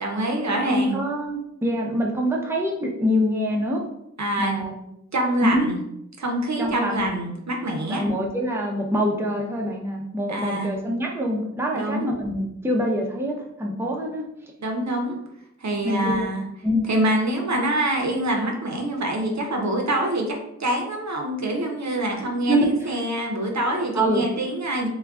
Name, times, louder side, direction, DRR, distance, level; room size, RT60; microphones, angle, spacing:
voice 1, 0.0-1.0 4.2-4.6 5.1-5.8 6.2-8.0 10.3-10.7 11.7-12.1 14.6-15.2 15.6-16.5 16.9-24.9, right 1 dB, 65° right, 1 dB, 0.5 m, -25 dB
voice 2, 0.7-3.8 4.4-4.7 5.4-5.7 6.6-7.1 7.9-14.2 15.8-16.3 16.6-16.9 22.2-22.9 23.9-24.2, equal, 10° right, 0 dB, 0.5 m, -25 dB
2.2 x 2.2 x 3.4 m, 0.81 s
wide cardioid pair, 45°, 29 cm